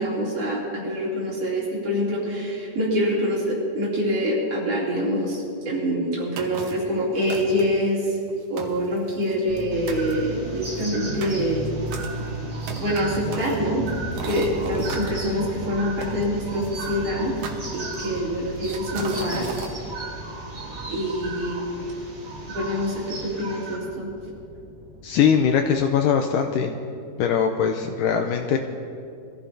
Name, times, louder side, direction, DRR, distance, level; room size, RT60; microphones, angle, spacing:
voice 1, 0.0-8.0 8.5-11.6 12.8-13.8 14.2-17.3 17.7-19.5 20.9-21.9 22.5-24.1, equal, 45° right, -6 dB, 3.8 m, -25 dB
sound 1, 6.4-6.9 7.3-7.8 8.3-8.4 8.6-9.6 9.9-10.1 10.6-15.1 16.0-16.9 17.4-18.2 18.6-19.7, right 5 dB, 65° right, 2.2 m, -37 dB
sound 2, 9.5-25.8, right 2 dB, 90° right, 3.1 m, -36 dB
sound 3, 9.7-23.7, right 3 dB, 20° right, 3.1 m, -38 dB
voice 2, 25.0-26.8 27.2-28.6, left 7 dB, 80° left, 5 dB, 2.0 m, -21 dB
23.5 x 14.5 x 2.7 m, 2.5 s
omnidirectional pair, 4.2 m